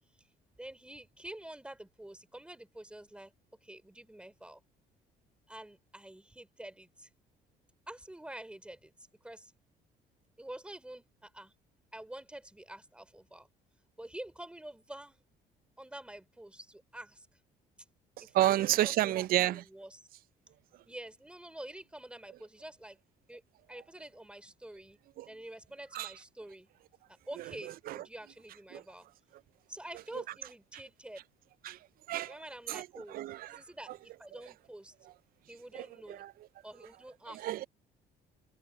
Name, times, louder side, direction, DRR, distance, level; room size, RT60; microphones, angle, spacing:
voice 1, 0.6-3.3 3.6-4.6 5.5-7.1 7.9-9.5 10.4-11.5 11.9-13.5 14.0-15.2 15.8-17.4 18.2-18.6 18.8-20.1 20.9-23.0 23.3-23.4 23.7-25.0 25.3-26.7 27.1-29.1 29.7-31.2 32.3-34.9 35.5-36.3 36.6-37.5, right 1 dB, 5° right, 3.2 m, -47 dB
voice 2, 18.2-19.6 25.2-25.3 25.9-26.1 27.4-27.5 27.9-28.0 28.7-28.8 30.1-30.2 31.6-32.3 32.7-33.6 33.9-34.0 35.7-36.3 37.3-37.7, right 14 dB, 60° right, 0.4 m, -31 dB
cardioid pair, 110°, 17 cm